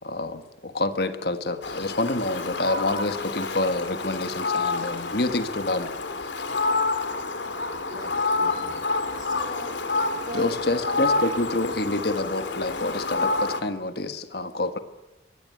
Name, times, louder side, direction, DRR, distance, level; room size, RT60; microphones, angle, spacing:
voice 1, 0.0-5.9 10.3-14.8, left 2 dB, 60° left, 10 dB, 1.5 m, -27 dB
Fowl, 1.6-13.6, left 3 dB, 80° left, 2.6 m, -28 dB
voice 2, 7.9-8.8 9.2-9.8 10.1-10.5 10.8-11.1, right 1 dB, 45° right, 4 dB, 3.6 m, -40 dB
23.5 x 18.5 x 9.5 m, 1.1 s
head